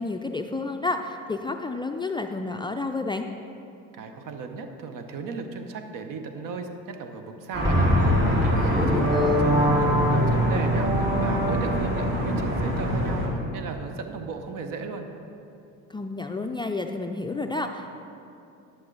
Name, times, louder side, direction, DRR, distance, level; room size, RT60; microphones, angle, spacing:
voice 1, 0.0-3.3 8.6-9.5 15.9-17.9, left 3 dB, 15° left, 4 dB, 0.3 m, -30 dB
voice 2, 3.9-15.1, right 4 dB, 60° right, 6 dB, 1.0 m, -36 dB
sound 1, 7.5-13.3, equal, 35° right, 2.0 m, -25 dB
sound 2, 7.6-12.1, equal, 10° right, 1.0 m, -24 dB
11.0 x 6.4 x 3.9 m, 2.7 s
supercardioid pair, 75°, 37 cm